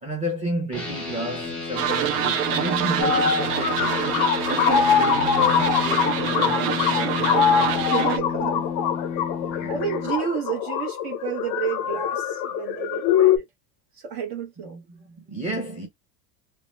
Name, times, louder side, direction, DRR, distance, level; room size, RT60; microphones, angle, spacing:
voice 1, 0.0-7.8 9.4-9.8 14.7-15.9, right 1 dB, 15° right, 0.8 m, -32 dB
sound 1, 0.7-10.1, left 5 dB, 5° left, 1.1 m, -31 dB
sound 2, 1.8-8.2, right 10 dB, 65° right, 0.6 m, -26 dB
sound 3, 3.0-13.4, left 8 dB, 40° left, 0.5 m, -23 dB
voice 2, 4.2-4.8 7.9-8.7 9.7-13.4 13.9-14.8, right 8 dB, 45° right, 1.0 m, -30 dB
2.7 x 2.1 x 3.2 m
cardioid pair, 150°, 49 cm